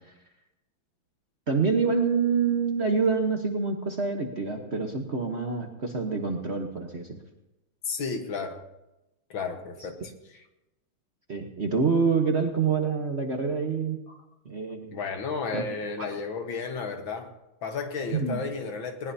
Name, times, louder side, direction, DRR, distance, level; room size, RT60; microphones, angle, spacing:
voice 1, 1.5-7.2 11.3-14.0 14.4-14.9 15.5-15.6 16.0-16.1 18.1-18.4, right 5 dB, 40° right, 2 dB, 1.2 m, -26 dB
voice 2, 7.9-8.6 9.3-10.4 14.1-14.2 14.9-17.3 17.6-19.1, left 5 dB, 65° left, 5 dB, 2.1 m, -33 dB
20.0 x 19.0 x 2.8 m, 0.95 s
omnidirectional pair, 2.3 m